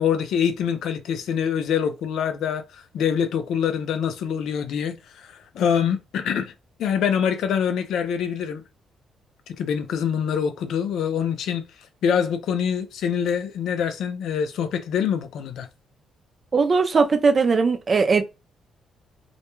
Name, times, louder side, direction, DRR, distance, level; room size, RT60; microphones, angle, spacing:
voice 1, 0.0-6.5 6.8-8.6 9.6-11.6 12.0-15.7, left 7 dB, 75° left, 0.4 m, -25 dB
voice 2, 16.5-18.2, right 4 dB, 40° right, 0.5 m, -19 dB
2.2 x 2.2 x 3.0 m
cardioid pair, 90°, 0 cm